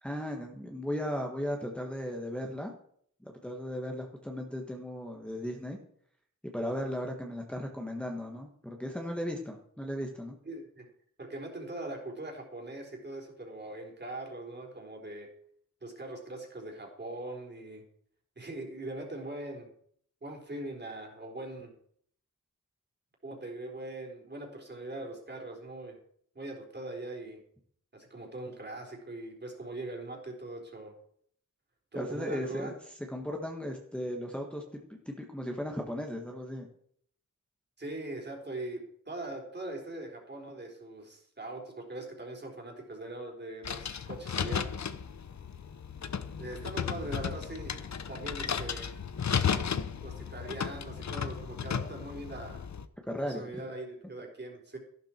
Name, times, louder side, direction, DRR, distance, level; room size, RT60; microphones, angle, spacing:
voice 1, 0.0-2.7 3.2-5.8 6.4-10.4 31.9-32.7 33.1-36.7 53.1-53.5, equal, 5° left, 1 dB, 1.5 m, -36 dB
voice 2, 10.5-10.9 11.2-15.3 15.8-17.8 18.4-19.7 20.2-21.7 23.2-26.0 26.3-27.4 27.9-30.9 31.9-32.7 37.8-44.7 46.4-47.8 48.1-48.9 50.0-52.7 53.2-54.8, right 2 dB, 35° right, 1 dB, 3.9 m, -41 dB
sound 1, 43.6-52.9, left 7 dB, 60° left, 0.9 m, -34 dB
14.5 x 12.0 x 4.5 m, 0.64 s
wide cardioid pair, 130°, 32 cm